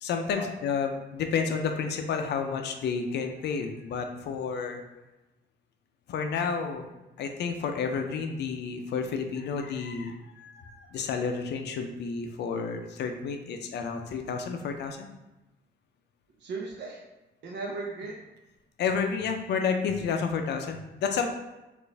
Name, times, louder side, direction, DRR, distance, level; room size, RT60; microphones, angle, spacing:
voice 1, 0.0-4.8 6.1-6.9 7.2-15.1 18.8-21.3, left 5 dB, 70° left, 5 dB, 0.5 m, -30 dB
voice 2, 16.4-17.0 17.4-18.2, right 3 dB, 80° right, -2 dB, 0.7 m, -36 dB
4.1 x 2.5 x 3.3 m, 1.0 s
cardioid pair, 170°, 18 cm